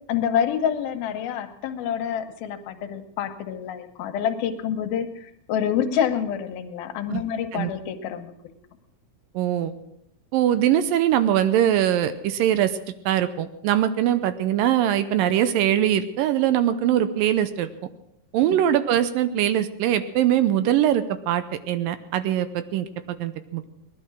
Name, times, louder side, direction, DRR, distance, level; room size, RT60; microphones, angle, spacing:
voice 1, 0.1-8.3 18.5-18.6, left 8 dB, 85° left, 8 dB, 2.9 m, -27 dB
voice 2, 9.3-9.7 10.3-12.8 13.1-17.7 18.3-23.7, right 11 dB, 80° right, 12 dB, 2.3 m, -22 dB
18.5 x 11.5 x 6.2 m, 0.76 s
omnidirectional pair, 4.2 m